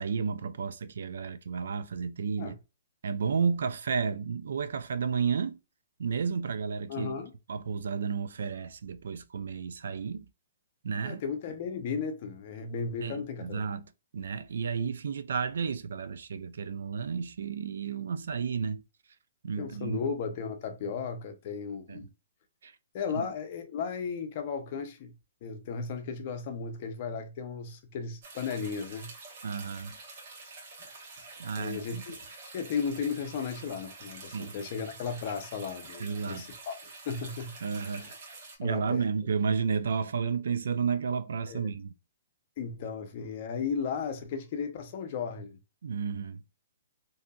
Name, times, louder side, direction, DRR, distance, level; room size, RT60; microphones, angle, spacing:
voice 1, 0.0-2.6 3.0-5.6 6.0-7.2 7.5-10.3 10.8-11.2 13.0-18.8 19.4-20.0 21.9-22.1 22.6-22.7 29.4-30.0 31.4-32.0 34.3-34.5 36.0-36.5 37.6-38.1 38.6-41.9 45.8-46.4, right 6 dB, 75° right, 0.3 m, -32 dB
voice 2, 6.9-7.3 11.0-13.6 19.6-22.1 22.9-25.1 25.4-29.1 31.5-32.2 32.5-36.7 37.1-37.6 37.9-38.1 38.6-39.1 41.5-41.7 42.6-45.6, left 6 dB, 40° left, 0.6 m, -35 dB
sound 1, 28.2-38.6, right 3 dB, 45° right, 1.0 m, -47 dB
2.7 x 2.5 x 2.3 m
hypercardioid pair, 155°, 0 cm